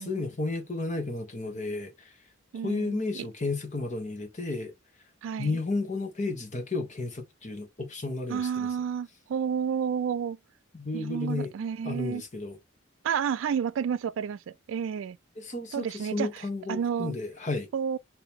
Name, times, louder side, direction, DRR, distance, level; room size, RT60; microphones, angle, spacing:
voice 1, 0.0-2.1 2.6-4.7 5.4-8.7 10.7-11.5 11.8-12.6 15.4-17.7, left 3 dB, 35° left, 1.2 m, -32 dB
voice 2, 2.5-3.3 5.2-5.6 8.3-10.4 10.9-12.2 13.0-15.2 15.7-17.1 17.7-18.0, right 7 dB, 75° right, 0.3 m, -31 dB
3.8 x 2.9 x 3.5 m
head